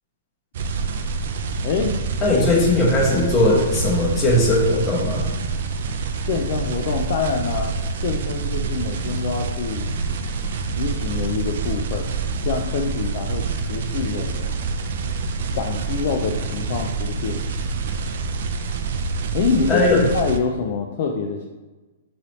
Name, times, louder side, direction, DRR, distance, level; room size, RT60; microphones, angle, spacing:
sound 1, 0.5-20.4, right 4 dB, 55° right, 0.4 m, -27 dB
voice 1, 1.6-1.9 6.2-7.8 8.0-9.9 10.7-12.1 12.4-14.5 15.5-17.4 19.3-21.4, left 5 dB, 45° left, 2 dB, 0.3 m, -25 dB
voice 2, 2.2-5.3 19.7-20.1, left 1 dB, 15° left, -3 dB, 0.8 m, -18 dB
3.1 x 2.7 x 4.0 m, 1.2 s
hypercardioid pair, 160°, 0 cm